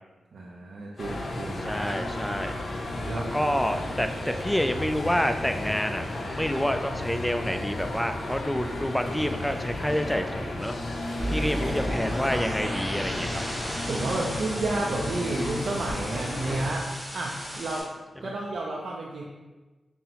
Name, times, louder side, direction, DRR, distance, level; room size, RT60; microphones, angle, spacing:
voice 1, 0.3-1.7 2.9-3.5 13.9-16.9 17.1-17.9 18.2-19.2, right 2 dB, 75° right, -2 dB, 0.4 m, -31 dB
sound 1, 1.0-16.7, left 1 dB, 60° left, 0.5 m, -33 dB
voice 2, 1.6-2.5 3.2-6.1 6.4-10.8 11.3-13.4 18.2-18.3, equal, 5° left, 7 dB, 0.3 m, -28 dB
sound 2, 11.2-17.8, equal, 10° right, 1.3 m, -34 dB
5.3 x 2.0 x 2.9 m, 1.2 s
cardioid pair, 55°, 0 cm